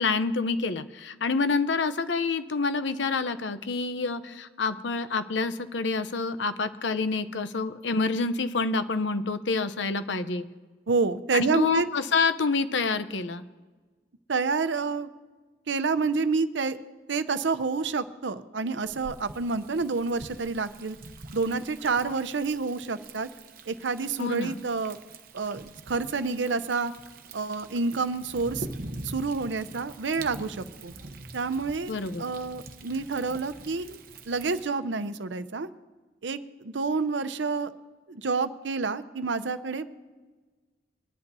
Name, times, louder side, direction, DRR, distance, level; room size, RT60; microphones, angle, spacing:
voice 1, 0.0-10.4 11.3-13.4 24.2-24.6 31.9-32.2, left 4 dB, 80° left, 12 dB, 0.7 m, -27 dB
voice 2, 10.9-11.9 14.3-15.1 15.7-16.8 17.1-21.0 21.3-23.3 23.7-25.0 25.3-26.9 27.3-28.7 29.0-30.9 31.3-31.9 32.2-34.0 34.3-35.7 36.2-37.7 38.1-39.9, right 4 dB, 80° right, 12 dB, 0.7 m, -28 dB
Thunder, 18.8-34.7, right 2 dB, 55° right, 0.9 m, -44 dB
23.0 x 10.5 x 2.7 m, 1.3 s
head